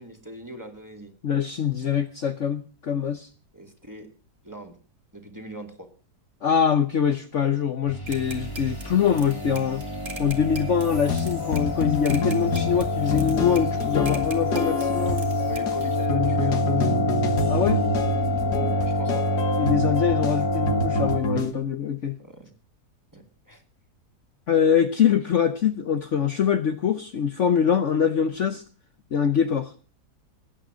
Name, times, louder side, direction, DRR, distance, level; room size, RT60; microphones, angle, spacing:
voice 1, 0.0-1.1 3.5-4.1 4.4-4.8 5.1-5.9 15.5-17.0 18.8-19.2 22.2-22.5 23.1-23.6, right 1 dB, 10° right, 4 dB, 2.6 m, -41 dB
voice 2, 1.2-3.3 6.4-9.8 10.2-15.3 17.5-17.8 19.6-22.2 24.5-28.6 29.1-29.7, left 7 dB, 55° left, 9 dB, 1.1 m, -24 dB
sound 1, 7.9-21.2, left 1 dB, 15° left, 1.4 m, -27 dB
sound 2, 8.1-16.1, right 3 dB, 50° right, 2.5 m, -43 dB
sound 3, 10.9-21.5, left 3 dB, 90° left, 2.1 m, -28 dB
19.0 x 9.0 x 6.2 m, 0.39 s
omnidirectional pair, 1.7 m